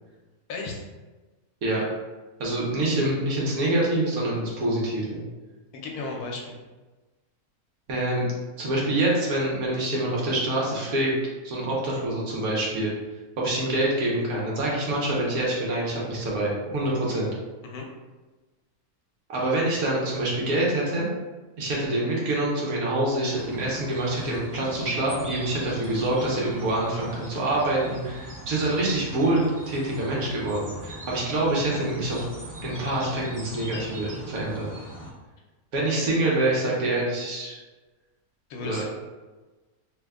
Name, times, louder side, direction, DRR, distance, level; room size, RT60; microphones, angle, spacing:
voice 1, 0.5-0.8 5.7-6.6 17.6-17.9 38.5-38.8, left 3 dB, 80° left, 0 dB, 1.2 m, -34 dB
voice 2, 2.4-5.2 7.9-8.2 8.6-11.1 11.4-12.9 13.4-17.3 19.3-21.0 21.6-29.4 29.6-32.2 32.6-34.7 35.7-37.6 38.6-38.8, right 1 dB, 75° right, -4 dB, 1.4 m, -26 dB
sound 1, 23.3-35.1, equal, 20° right, 0.5 m, -40 dB
3.2 x 2.1 x 3.5 m, 1.2 s
omnidirectional pair, 1.6 m